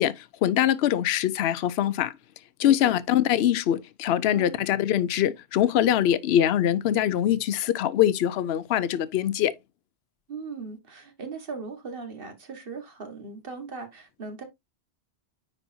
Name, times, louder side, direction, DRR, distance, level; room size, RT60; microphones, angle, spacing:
voice 1, 0.0-2.1 2.6-9.5, left 11 dB, 75° left, 0.8 m, -23 dB
voice 2, 4.3-4.6 10.3-14.4, right 4 dB, 55° right, 1.8 m, -38 dB
9.9 x 4.3 x 2.7 m
omnidirectional pair, 1.1 m